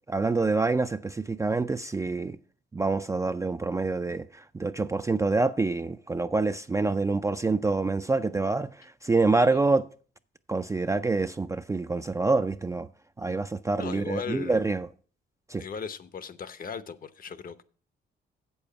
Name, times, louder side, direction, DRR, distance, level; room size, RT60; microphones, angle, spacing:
voice 1, 0.1-2.4 2.7-9.9 10.5-12.9 13.2-14.9 15.5-15.6, right 3 dB, 15° right, 0.3 m, -26 dB
voice 2, 13.8-14.7 15.6-17.6, left 6 dB, 45° left, 0.8 m, -37 dB
8.0 x 7.0 x 5.7 m
cardioid pair, 90°, 20 cm